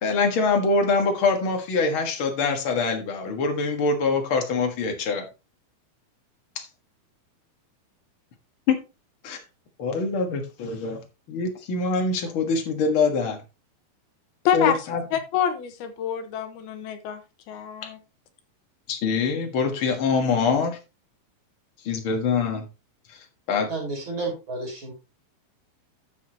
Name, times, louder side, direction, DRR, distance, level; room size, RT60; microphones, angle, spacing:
voice 1, 0.0-5.3 6.5-6.7 8.7-8.8 9.2-9.4 9.8-11.0 11.3-13.4 14.5-15.0 18.9-20.8 21.8-22.7 23.5-23.7, left 4 dB, 50° left, 4 dB, 1.6 m, -24 dB
voice 2, 14.4-17.2 17.5-18.0, left 9 dB, 80° left, 7 dB, 3.0 m, -26 dB
voice 3, 23.7-24.9, right 3 dB, 30° right, -1 dB, 4.3 m, -31 dB
12.5 x 7.0 x 2.9 m, 0.28 s
omnidirectional pair, 4.5 m